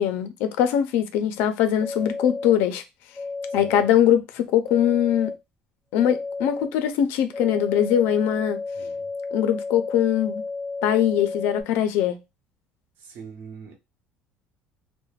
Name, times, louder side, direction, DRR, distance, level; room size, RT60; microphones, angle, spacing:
voice 1, 0.0-2.8 3.5-5.3 5.9-8.6 9.3-10.4 10.8-12.2, left 10 dB, 85° left, 0.4 m, -22 dB
sound 1, 1.8-2.5 3.1-3.9 4.7-5.3 6.0-6.7 7.3-11.6, left 3 dB, 5° left, 0.4 m, -32 dB
voice 2, 13.0-13.8, right 6 dB, 65° right, 0.7 m, -42 dB
2.3 x 2.1 x 3.1 m
cardioid pair, 145°, 3 cm